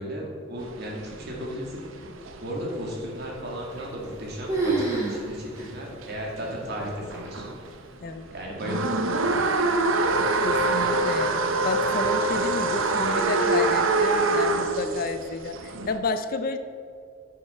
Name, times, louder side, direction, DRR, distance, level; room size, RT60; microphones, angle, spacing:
voice 1, 0.0-1.8 2.4-7.5 8.3-9.4, equal, 55° right, -2 dB, 2.2 m, -34 dB
sound 1, 0.6-7.7 8.1-16.0, right 2 dB, 80° right, 0.7 m, -25 dB
sound 2, 3.7-4.2 4.5-5.2 5.5-5.6 6.3-6.4 7.1-7.5, right 3 dB, 15° right, 2.2 m, -27 dB
voice 2, 10.4-15.5 15.9-16.6, left 3 dB, 45° left, 10 dB, 0.5 m, -31 dB
9.5 x 6.9 x 4.4 m, 2.3 s
head